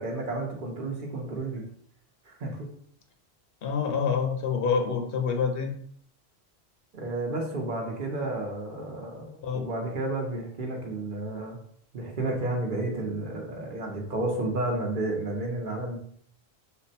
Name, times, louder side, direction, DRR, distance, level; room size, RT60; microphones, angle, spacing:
voice 1, 0.0-1.7 2.3-2.7 6.9-11.6 11.9-16.0, right 2 dB, 55° right, 0 dB, 0.9 m, -31 dB
voice 2, 3.6-5.7 9.4-9.7, left 6 dB, 65° left, 4 dB, 0.7 m, -27 dB
3.6 x 2.1 x 4.0 m, 0.63 s
omnidirectional pair, 1.1 m